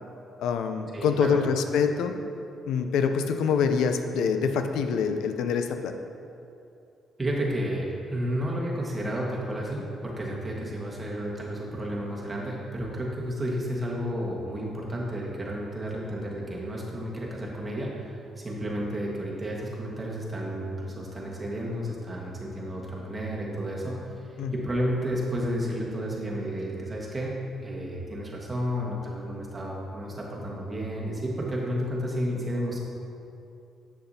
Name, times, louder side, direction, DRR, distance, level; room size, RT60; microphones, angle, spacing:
voice 1, 0.4-2.1 2.7-5.9 24.4-24.6, left 6 dB, 85° left, 7 dB, 0.4 m, -25 dB
voice 2, 0.9-1.4 7.2-24.0 24.5-32.8, equal, 25° right, -3 dB, 1.5 m, -32 dB
7.6 x 6.7 x 2.8 m, 2.7 s
cardioid pair, 90°, 0 cm